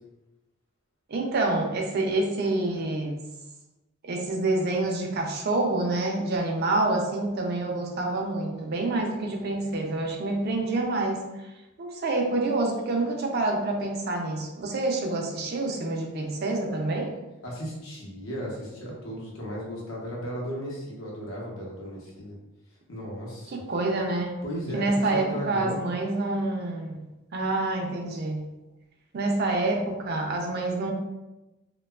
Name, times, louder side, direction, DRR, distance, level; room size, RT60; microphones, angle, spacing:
voice 1, 1.1-3.2 4.0-11.2 11.8-17.1 23.5-24.4 24.7-27.0 27.3-28.4 29.1-30.9, right 2 dB, 50° right, 1 dB, 0.4 m, -27 dB
voice 2, 17.4-22.3 22.9-23.5 24.4-25.8, equal, 75° left, -4 dB, 0.8 m, -35 dB
2.8 x 2.2 x 2.3 m, 1.0 s
head